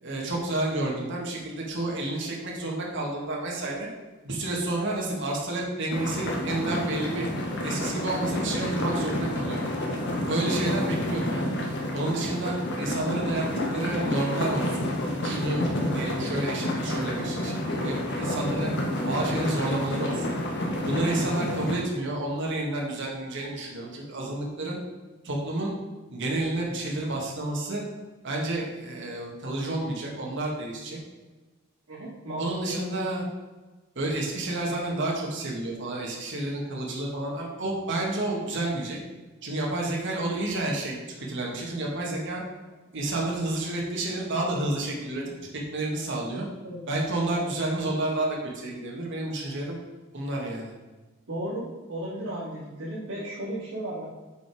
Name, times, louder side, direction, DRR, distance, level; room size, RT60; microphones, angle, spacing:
voice 1, 0.0-3.9 4.2-7.3 7.6-9.6 10.3-11.5 11.9-13.5 13.7-14.9 15.2-18.7 19.1-20.3 20.8-24.8 25.2-25.7 26.1-27.8 28.2-31.0 32.4-33.2 34.0-39.0 39.4-41.0 41.3-42.4 42.9-45.2 45.5-46.5 46.9-49.8 50.1-50.7, right 2 dB, 60° right, -2 dB, 1.9 m, -30 dB
sound 1, 5.9-21.8, left 1 dB, 55° left, 1.4 m, -29 dB
voice 2, 31.9-32.8 46.6-46.8 47.3-47.5 51.3-54.0, right 1 dB, 85° right, -12 dB, 2.6 m, -35 dB
7.7 x 5.2 x 4.9 m, 1.2 s
head